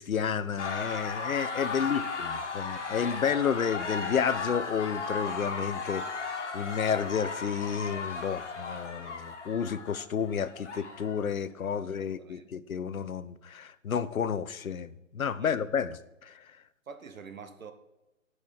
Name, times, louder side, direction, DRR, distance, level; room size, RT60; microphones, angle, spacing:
voice 1, 0.0-16.5, left 7 dB, 85° left, 14 dB, 0.7 m, -31 dB
sound 1, 0.6-11.3, left 4 dB, 55° left, 1.5 m, -36 dB
voice 2, 1.7-2.4 11.7-12.5 15.4-15.7 16.9-17.7, right 5 dB, 75° right, 9 dB, 1.2 m, -48 dB
8.6 x 4.7 x 6.5 m, 1.0 s
figure-of-eight pair, 150°, 41 cm